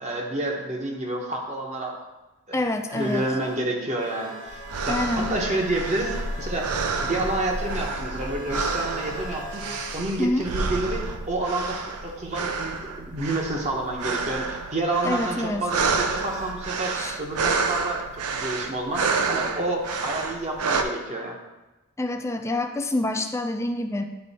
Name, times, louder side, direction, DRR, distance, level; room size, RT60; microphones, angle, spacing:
voice 1, 0.0-2.0 2.5-2.6 2.9-4.6 4.8-6.7 7.0-9.6 9.9-21.4, right 2 dB, 30° right, 0 dB, 0.9 m, -29 dB
voice 2, 2.5-3.3 4.9-5.4 10.2-10.4 15.0-15.7 16.9-17.2 22.0-24.0, left 2 dB, 15° left, 5 dB, 0.3 m, -27 dB
sound 1, 2.9-10.0 14.4-14.6 16.1-16.6 18.0-18.2 19.8-19.9, right 1 dB, 60° right, 1.4 m, -40 dB
sound 2, 4.5-20.8, right 4 dB, 85° right, 0.5 m, -29 dB
8.9 x 3.1 x 4.1 m, 1.1 s
head